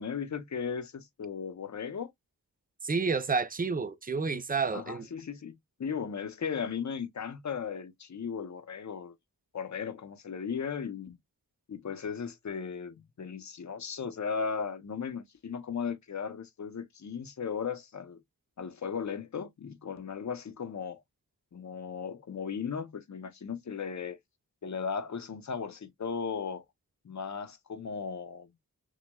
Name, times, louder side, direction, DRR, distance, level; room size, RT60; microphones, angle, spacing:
voice 1, 0.0-2.1 4.7-9.1 9.5-11.2 11.7-18.2 18.6-21.0 21.5-24.2 24.6-26.6 27.0-28.5, left 6 dB, 50° left, 0.6 m, -36 dB
voice 2, 2.8-5.1, right 4 dB, 25° right, 0.4 m, -30 dB
6.0 x 2.1 x 2.2 m
wide cardioid pair, 100°, 37 cm